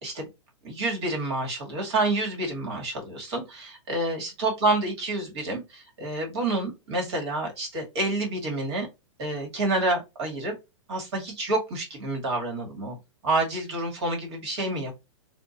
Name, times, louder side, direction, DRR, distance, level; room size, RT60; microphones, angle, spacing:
voice 1, 0.6-8.9 9.2-10.6 10.9-13.0 13.2-14.9, right 2 dB, 60° right, 1 dB, 2.1 m, -28 dB
4.3 x 2.6 x 2.7 m, 0.24 s
hypercardioid pair, 125°, 16 cm